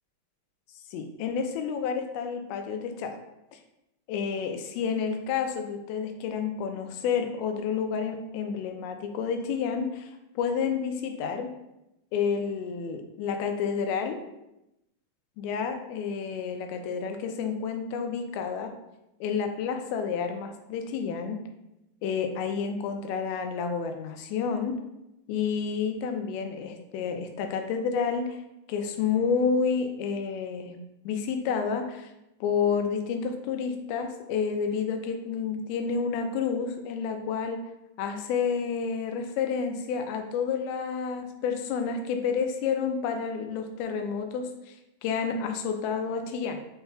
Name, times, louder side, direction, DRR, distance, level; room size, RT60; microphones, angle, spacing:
voice 1, 0.9-3.2 3.5-3.6 4.1-10.1 10.4-11.5 12.1-14.2 15.4-18.7 19.2-21.4 22.0-24.8 25.3-28.4 28.7-30.8 31.1-32.1 32.4-37.6 38.0-44.8 45.0-46.6, left 6 dB, 85° left, 5 dB, 2.4 m, -30 dB
5.6 x 4.0 x 2.3 m, 0.89 s
omnidirectional pair, 4.4 m